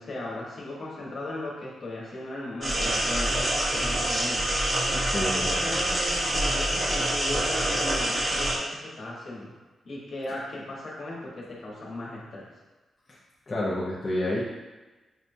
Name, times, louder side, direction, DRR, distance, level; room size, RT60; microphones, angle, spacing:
voice 1, 0.0-4.4 5.2-9.5 9.8-12.5, left 1 dB, 50° left, -4 dB, 1.1 m, -37 dB
sound 1, 2.6-8.6, right 1 dB, 30° right, 0.6 m, -26 dB
voice 2, 4.9-5.6 13.1-13.2 13.5-14.4, left 1 dB, 20° left, -6 dB, 0.5 m, -29 dB
6.3 x 2.2 x 2.6 m, 1.2 s
wide cardioid pair, 150°, 0 cm